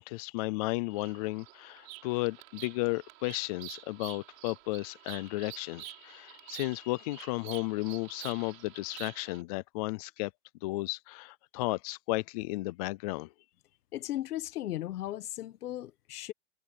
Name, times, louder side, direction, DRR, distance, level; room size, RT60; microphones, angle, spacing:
voice 1, 0.0-10.3 10.6-13.3, left 22 dB, 30° left, 0.4 m, -34 dB
Bird vocalization bird call bird song, 0.9-9.4, right 18 dB, 65° right, 3.8 m, -48 dB
voice 2, 13.9-16.3, left 13 dB, 90° left, 1.3 m, -36 dB
supercardioid pair, 145°, 44 cm